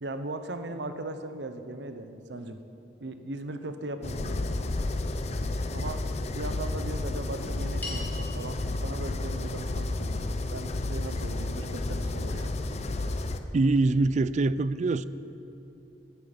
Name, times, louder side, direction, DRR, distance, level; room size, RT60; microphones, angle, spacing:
voice 1, 0.0-2.6 3.0-4.5 5.7-6.1 6.4-12.5, right 2 dB, 75° right, 9 dB, 0.8 m, -38 dB
sound 1, 4.0-13.4, left 2 dB, 40° left, 0.6 m, -31 dB
sound 2, 7.8-12.3, left 2 dB, 10° left, 2.8 m, -46 dB
voice 2, 13.5-15.0, right 3 dB, 40° right, 16 dB, 0.4 m, -24 dB
17.0 x 9.3 x 5.2 m, 2.9 s
head